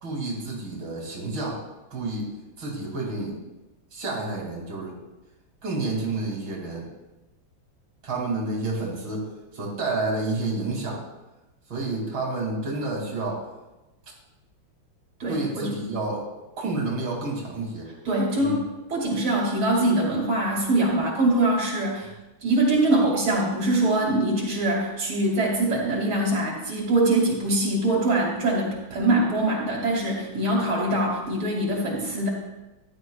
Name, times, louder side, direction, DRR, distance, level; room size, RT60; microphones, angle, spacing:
voice 1, 0.0-1.6 1.9-2.3 2.6-3.4 3.9-5.0 5.6-6.9 8.0-11.0 11.7-13.4 15.3-16.2 16.6-17.9 18.4-18.6, right 2 dB, 70° right, -3 dB, 3.2 m, -29 dB
voice 2, 15.2-15.7 18.0-22.1 22.4-32.3, right 1 dB, 85° right, -3 dB, 3.3 m, -23 dB
15.0 x 11.5 x 2.4 m, 1.0 s
omnidirectional pair, 2.2 m